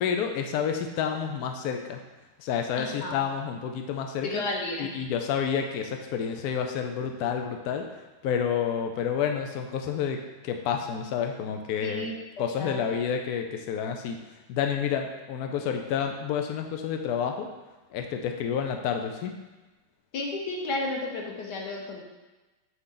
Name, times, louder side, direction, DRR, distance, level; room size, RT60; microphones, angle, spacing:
voice 1, 0.0-2.0 2.4-4.4 4.8-7.9 8.2-12.1 12.4-14.2 14.5-17.5 17.9-19.3, left 7 dB, 80° left, 4 dB, 0.8 m, -29 dB
voice 2, 2.8-3.2 4.2-4.9 11.8-12.1 12.6-12.8 20.1-22.0, left 2 dB, 60° left, 0 dB, 1.5 m, -32 dB
8.3 x 3.9 x 3.8 m, 1.2 s
omnidirectional pair, 2.2 m